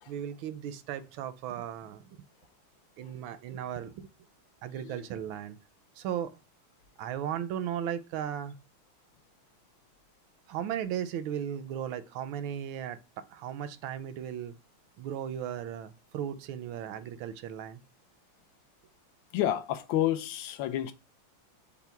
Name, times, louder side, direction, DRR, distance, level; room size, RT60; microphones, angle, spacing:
voice 1, 0.1-2.2 3.0-4.1 4.6-5.6 6.0-6.3 7.0-8.6 10.5-14.5 15.0-17.8, right 9 dB, 80° right, 1.3 m, -36 dB
voice 2, 19.3-20.9, left 12 dB, 75° left, 1.3 m, -30 dB
5.7 x 2.1 x 4.4 m
omnidirectional pair, 2.2 m